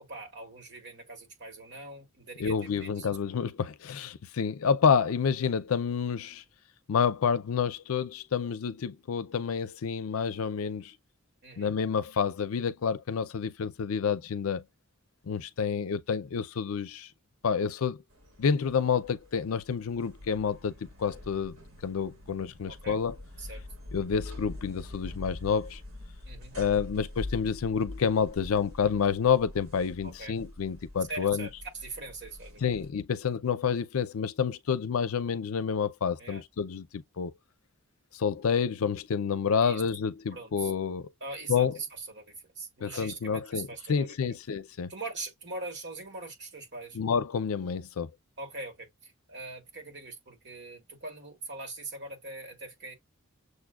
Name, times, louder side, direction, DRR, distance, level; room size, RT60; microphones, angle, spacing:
voice 1, 0.0-3.5 11.4-11.8 22.7-23.0 23.4-23.6 26.2-26.5 30.0-30.4 31.1-32.8 36.2-36.4 39.6-39.8 40.3-40.7 41.2-44.2 44.9-47.0 48.4-52.9, right 3 dB, 55° right, 1.8 m, -42 dB
voice 2, 2.4-6.4 6.9-10.9 11.6-14.6 15.3-17.1 17.4-18.0 18.4-21.6 21.8-23.2 23.9-25.8 26.6-31.5 32.6-37.3 38.1-41.1 41.5-41.7 42.8-44.9 47.0-48.1, left 6 dB, 85° left, 0.5 m, -29 dB
sound 1, 18.1-32.9, left 1 dB, 85° right, 1.7 m, -45 dB
6.6 x 2.2 x 2.3 m
head